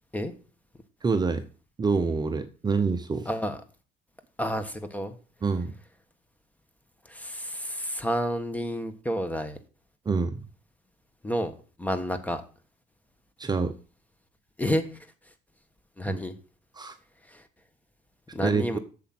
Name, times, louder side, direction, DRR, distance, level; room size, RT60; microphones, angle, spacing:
voice 1, 1.0-1.5 1.8-3.3 5.4-5.7 10.1-10.4 13.4-13.7 16.1-16.2 16.8-16.9 18.4-18.8, right 4 dB, 25° right, 8 dB, 0.8 m, -26 dB
voice 2, 3.2-3.6 4.4-5.2 7.0-9.6 11.2-11.5 11.8-12.4 14.6-15.1 16.0-16.4 17.3-17.4 18.3-18.8, equal, 10° left, 10 dB, 1.4 m, -30 dB
8.3 x 7.0 x 6.1 m, 0.37 s
cardioid pair, 110°, 17 cm